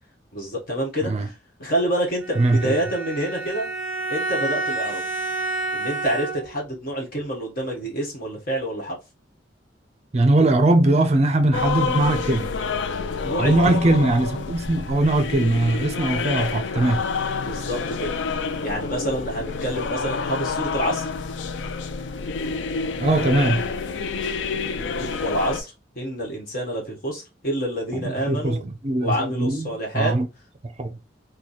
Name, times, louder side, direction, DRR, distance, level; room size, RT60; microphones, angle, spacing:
voice 1, 0.3-3.7 4.1-5.1 5.7-9.0 13.2-13.9 17.4-18.1 18.6-21.1 24.2-28.6 29.0-30.1, right 1 dB, 50° left, 1.3 m, -28 dB
Bowed string instrument, 2.2-6.7, right 2 dB, 10° right, 1.1 m, -29 dB
voice 2, 2.4-2.7 10.1-12.5 13.4-17.0 23.0-23.7 27.9-30.3 30.8-31.0, right 2 dB, 35° right, 0.5 m, -21 dB
sound 1, 11.5-25.6, left 5 dB, 80° left, 0.4 m, -28 dB
3.1 x 2.2 x 4.0 m
head